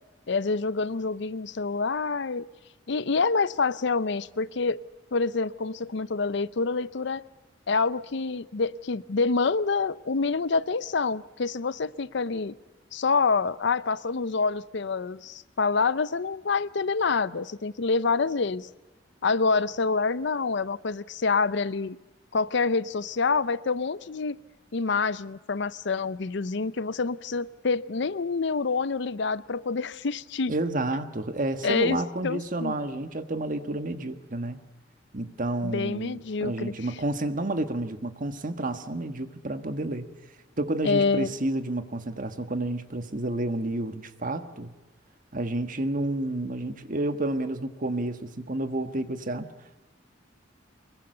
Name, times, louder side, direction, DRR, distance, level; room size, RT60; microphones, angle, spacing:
voice 1, 0.3-2.5 2.9-4.8 5.1-7.2 7.7-12.6 12.9-18.7 19.2-22.0 22.3-24.4 24.7-30.5 31.6-32.0 32.2-32.7 35.6-36.7 40.8-41.3, left 4 dB, 70° left, 17 dB, 0.6 m, -27 dB
voice 2, 30.5-34.6 35.1-40.1 40.6-44.7 45.3-49.5, right 1 dB, 45° right, 8 dB, 1.6 m, -30 dB
23.5 x 22.5 x 6.7 m, 1.1 s
head